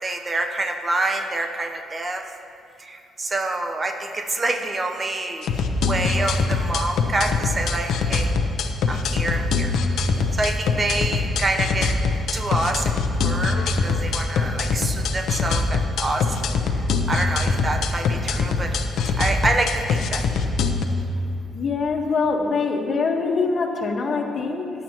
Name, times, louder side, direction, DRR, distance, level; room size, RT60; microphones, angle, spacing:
voice 1, 0.0-2.2 2.8-5.6 5.9-8.3 8.9-9.7 10.3-11.9 12.3-12.9 13.2-16.3 16.7-18.8 19.2-20.3, right 2 dB, 30° right, 5 dB, 0.9 m, -27 dB
sound 1, 5.4-20.8, left 4 dB, 75° left, 0.8 m, -23 dB
voice 2, 21.5-24.7, left 4 dB, 50° left, 1 dB, 1.5 m, -24 dB
19.5 x 10.0 x 3.0 m, 2.6 s
cardioid pair, 90°, 0 cm